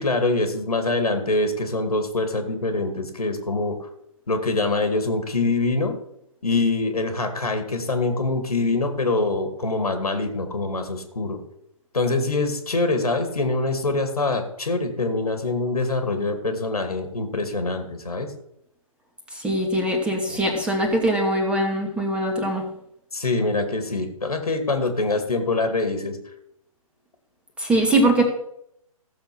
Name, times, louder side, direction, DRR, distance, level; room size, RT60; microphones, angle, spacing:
voice 1, 0.0-3.8 4.3-6.0 6.4-11.4 11.9-18.3 20.3-20.4 23.1-26.2, left 3 dB, 90° left, 6 dB, 2.5 m, -24 dB
voice 2, 19.3-22.7 27.6-28.2, right 1 dB, 5° right, 2 dB, 2.0 m, -22 dB
15.0 x 6.9 x 6.2 m, 0.76 s
hypercardioid pair, 135°, 19 cm